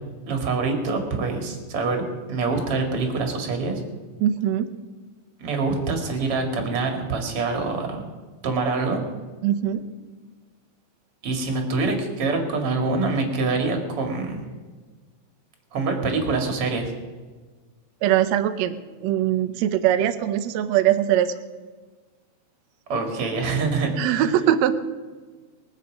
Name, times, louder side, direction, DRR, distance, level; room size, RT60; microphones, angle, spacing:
voice 1, 0.3-3.8 5.4-8.1 8.4-9.0 11.2-14.4 15.7-16.9 22.9-24.2, right 3 dB, 45° right, 4 dB, 2.7 m, -25 dB
voice 2, 4.2-4.7 9.4-9.9 18.0-21.4 24.0-24.8, right 11 dB, 75° right, 9 dB, 1.6 m, -22 dB
23.0 x 8.2 x 5.1 m, 1.4 s
omnidirectional pair, 4.1 m